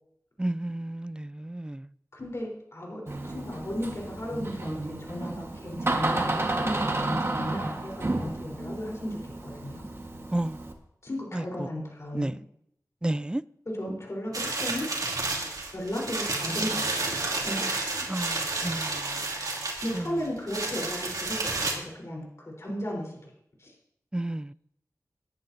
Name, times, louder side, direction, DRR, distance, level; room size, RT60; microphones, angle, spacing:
voice 1, 0.4-1.9 10.3-10.6 11.3-11.7 12.1-12.4 13.0-13.4 18.1-19.2 19.9-20.2 24.1-24.5, right 1 dB, 15° right, 0.3 m, -31 dB
voice 2, 2.1-9.8 11.0-12.3 13.7-14.9 15.7-17.9 18.6-18.8 19.4-23.3 23.6-23.7, equal, 50° left, 4.2 m, -35 dB
Door, 3.1-10.7, right 2 dB, 40° right, 1.6 m, -32 dB
sound 1, 14.3-21.7, right 3 dB, 80° right, 2.6 m, -31 dB
19.5 x 10.5 x 2.8 m
wide cardioid pair, 70°, 6 cm